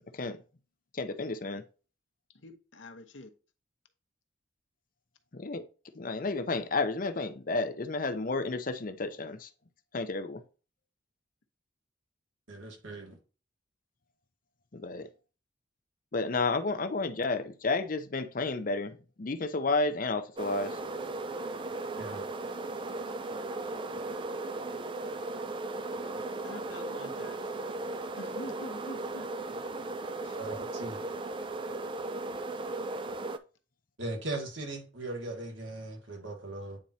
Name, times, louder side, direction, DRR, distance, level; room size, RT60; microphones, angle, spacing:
voice 1, 0.9-1.6 5.3-5.6 6.0-9.5 9.9-10.4 14.7-15.1 16.1-20.8, left 3 dB, 45° left, 0.6 m, -31 dB
voice 2, 2.4-3.3 26.4-27.7 28.1-29.3 30.2-30.4, left 2 dB, 75° left, 1.0 m, -46 dB
voice 3, 12.5-13.2 22.0-22.2 30.4-31.0 34.0-36.8, right 2 dB, 85° right, 2.0 m, -38 dB
sound 1, 20.4-33.4, right 2 dB, 25° right, 0.4 m, -36 dB
8.7 x 4.5 x 2.7 m
head